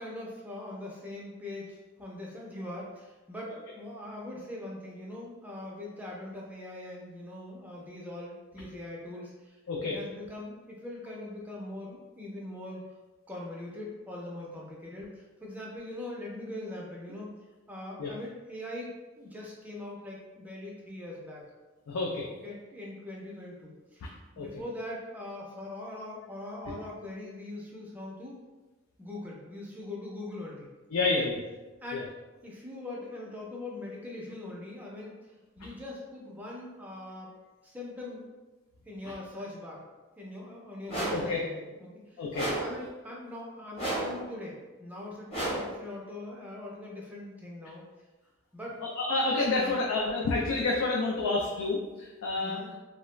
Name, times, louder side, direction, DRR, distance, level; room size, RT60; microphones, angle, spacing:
voice 1, 0.0-12.8 13.3-17.3 17.7-21.5 22.3-28.4 29.0-30.7 31.2-31.3 31.8-32.1 32.4-37.3 37.6-38.3 38.9-39.9 40.2-42.2 42.6-47.8 48.5-48.8 49.5-49.9 52.4-52.7, left 1 dB, 10° right, -3 dB, 0.4 m, -42 dB
voice 2, 21.9-22.2 24.4-24.5 30.9-31.4 31.9-32.0 41.1-41.4 42.2-42.5 49.0-52.6, left 3 dB, 85° left, -2 dB, 0.4 m, -29 dB
sound 1, 40.9-41.3 42.3-42.8 43.8-44.2 45.3-45.8, right 1 dB, 30° left, 0.9 m, -32 dB
2.3 x 2.0 x 3.1 m, 1.2 s
head